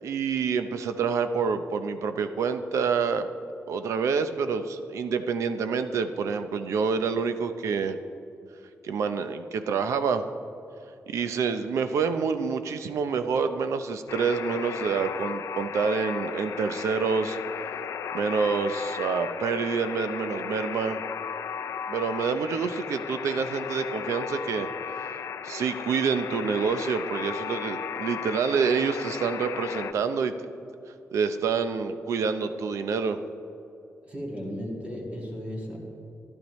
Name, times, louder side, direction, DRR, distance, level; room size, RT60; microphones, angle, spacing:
voice 1, 0.0-3.3 3.7-8.0 8.8-10.3 11.1-17.4 18.1-21.0 21.9-24.7 25.0-30.3 31.1-33.2, right 5 dB, 80° right, 9 dB, 0.6 m, -27 dB
Alarm, 14.1-29.9, left 8 dB, 80° left, 0.4 m, -35 dB
voice 2, 34.0-35.8, equal, 25° right, -3 dB, 2.1 m, -35 dB
14.5 x 12.0 x 3.1 m, 2.7 s
wide cardioid pair, 175°, 5 cm